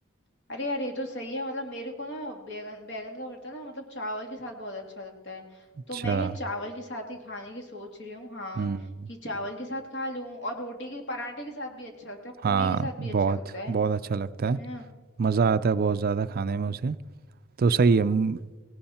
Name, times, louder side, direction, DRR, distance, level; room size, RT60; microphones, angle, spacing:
voice 1, 0.5-8.7 9.1-13.8 14.5-14.9, left 1 dB, 55° left, 2.3 m, -36 dB
voice 2, 5.9-6.3 8.6-9.1 12.4-13.4 13.7-14.6 15.2-17.0 17.6-18.4, right 5 dB, 45° right, 0.4 m, -25 dB
18.0 x 17.5 x 4.3 m
head